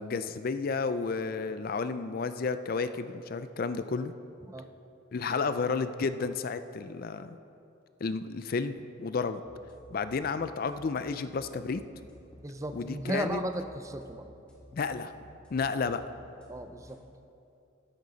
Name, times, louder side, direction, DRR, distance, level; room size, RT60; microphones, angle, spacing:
voice 1, 0.0-4.1 5.1-7.4 8.0-9.4 9.9-11.8 12.7-13.4 14.7-15.1 15.5-16.0, left 4 dB, 45° left, 11 dB, 0.4 m, -32 dB
sound 1, 9.4-17.0, equal, 5° left, 2.1 m, -54 dB
voice 2, 12.4-14.2 16.5-17.0, right 1 dB, 15° right, 8 dB, 0.5 m, -35 dB
14.0 x 11.5 x 4.0 m, 2.7 s
head